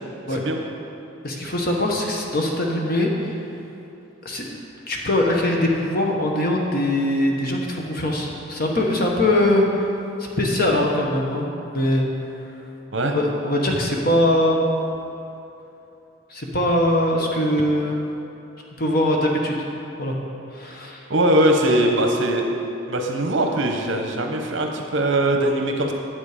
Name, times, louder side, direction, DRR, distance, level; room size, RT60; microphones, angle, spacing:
voice 1, 1.2-3.3 4.2-4.6 4.9-9.7 10.2-12.1 13.1-14.6 16.3-18.0 18.8-19.6 20.0-20.1 20.5-21.1, left 1 dB, 45° left, 0 dB, 1.2 m, -22 dB
voice 2, 21.1-22.5 22.9-25.9, right 1 dB, 65° right, 3 dB, 1.0 m, -21 dB
9.6 x 7.5 x 5.0 m, 2.8 s
head